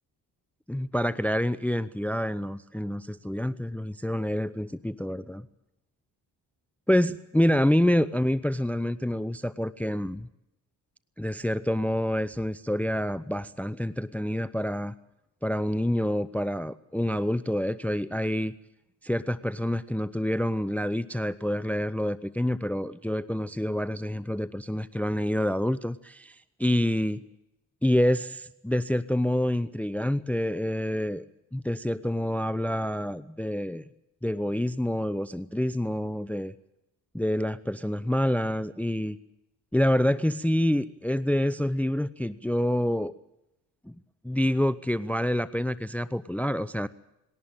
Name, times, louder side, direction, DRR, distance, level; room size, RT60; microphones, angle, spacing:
voice 1, 0.7-5.5 6.9-10.3 11.2-14.9 15.4-18.5 19.0-27.2 27.8-31.3 31.5-33.9 34.2-36.5 37.1-39.2 39.7-43.1 43.9-44.0 44.2-46.9, left 1 dB, 5° left, 18 dB, 0.8 m, -27 dB
21.0 x 18.0 x 9.1 m, 0.88 s
hypercardioid pair, 40°, 48 cm